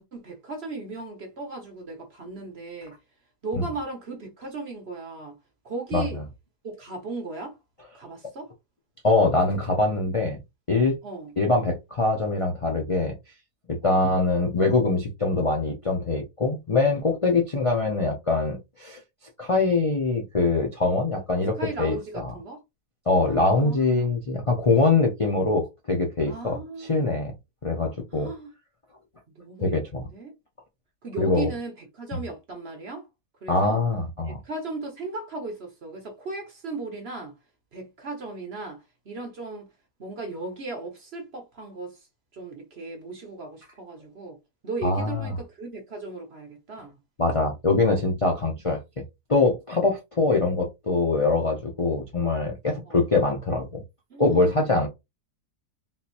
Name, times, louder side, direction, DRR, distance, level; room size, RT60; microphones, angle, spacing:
voice 1, 0.0-2.9 3.4-5.4 5.6-6.2 6.6-7.6 7.9-8.5 11.0-11.4 13.8-14.0 21.6-22.6 23.2-24.2 26.3-27.2 28.1-28.5 29.4-30.3 31.0-33.1 33.4-33.8 34.2-37.3 37.7-39.7 40.0-42.1 42.3-44.4 44.6-47.0 52.8-53.0 54.1-54.5, right 3 dB, 50° right, 0.9 m, -36 dB
voice 2, 9.0-10.4 10.7-10.9 11.4-13.1 13.7-19.0 19.4-22.3 23.1-27.3 27.6-28.3 29.6-30.0 31.2-31.5 33.5-34.4 44.8-45.4 47.2-48.8 49.3-53.8 54.2-54.9, left 3 dB, 55° left, 0.3 m, -23 dB
3.6 x 2.9 x 2.5 m
omnidirectional pair, 1.7 m